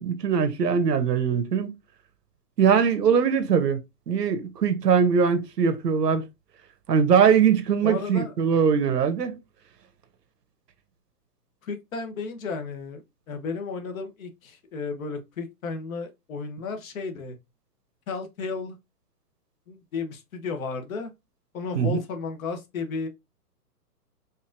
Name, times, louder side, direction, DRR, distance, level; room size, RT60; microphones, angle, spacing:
voice 1, 0.0-1.7 2.6-3.8 4.1-6.2 6.9-9.4 21.7-22.0, right 7 dB, 85° right, 0.9 m, -21 dB
voice 2, 7.8-8.3 11.6-13.0 13.3-17.4 18.1-18.8 19.7-21.1 21.5-23.1, left 4 dB, 60° left, 1.0 m, -33 dB
4.4 x 2.6 x 2.5 m
hypercardioid pair, 135°, 47 cm